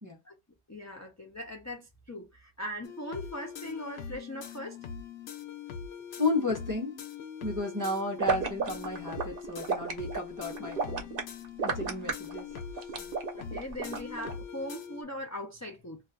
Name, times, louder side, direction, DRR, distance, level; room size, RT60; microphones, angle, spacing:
voice 1, 0.7-4.8 13.3-16.0, left 1 dB, 25° left, 0.4 m, -40 dB
sound 1, 2.8-15.0, left 7 dB, 85° left, 0.8 m, -42 dB
voice 2, 6.2-7.0 7.4-11.1 11.6-12.5 13.0-13.1, left 2 dB, 20° right, 0.7 m, -33 dB
sound 2, 8.2-14.3, right 5 dB, 65° right, 0.8 m, -32 dB
2.4 x 2.2 x 3.7 m
omnidirectional pair, 1.0 m